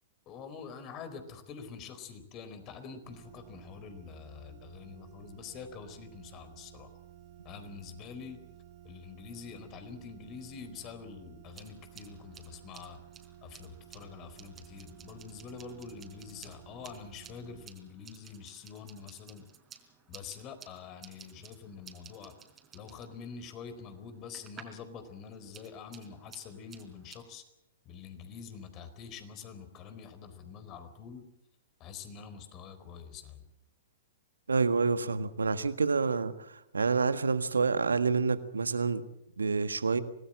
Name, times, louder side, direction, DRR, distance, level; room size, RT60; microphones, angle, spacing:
voice 1, 0.3-6.9 7.4-8.4 8.8-13.0 13.4-19.4 20.1-22.3 22.7-27.4 27.8-31.3 31.8-33.5, left 6 dB, 35° left, 10 dB, 4.2 m, -46 dB
sound 1, 3.0-17.7, right 12 dB, 45° right, 2.7 m, -54 dB
sound 2, 11.4-24.9 25.2-27.2, right 7 dB, 20° right, 4.2 m, -55 dB
voice 2, 34.5-39.0 39.4-40.0, right 4 dB, 80° right, 11 dB, 1.6 m, -28 dB
26.0 x 19.0 x 7.7 m, 0.84 s
figure-of-eight pair, 110°, 0 cm